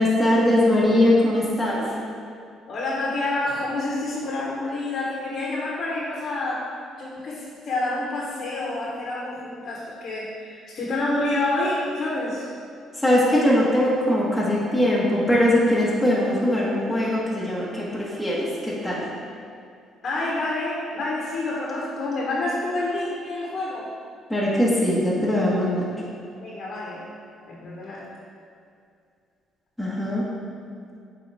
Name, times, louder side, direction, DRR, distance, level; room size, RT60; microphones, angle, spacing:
voice 1, 0.0-1.9 13.0-19.0 24.3-25.8 29.8-30.2, left 1 dB, ahead, -7 dB, 1.3 m, -21 dB
voice 2, 2.7-6.7 7.0-12.5 20.0-23.9 26.4-27.0 27.5-28.1, left 2 dB, 55° left, -4 dB, 1.2 m, -28 dB
8.0 x 3.9 x 3.5 m, 2.4 s
cardioid pair, 100°, 0 cm